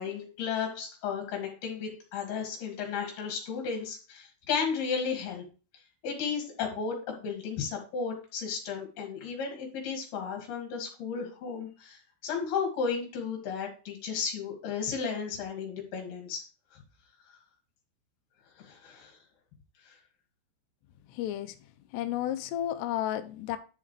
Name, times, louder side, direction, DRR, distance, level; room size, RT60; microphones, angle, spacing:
voice 1, 0.0-5.5 6.0-16.4 18.6-19.1 19.9-20.0, left 6 dB, 55° left, 3.9 m, -34 dB
voice 2, 21.1-21.6 21.9-23.6, left 12 dB, 90° left, 2.4 m, -32 dB
10.5 x 5.7 x 3.3 m
omnidirectional pair, 5.7 m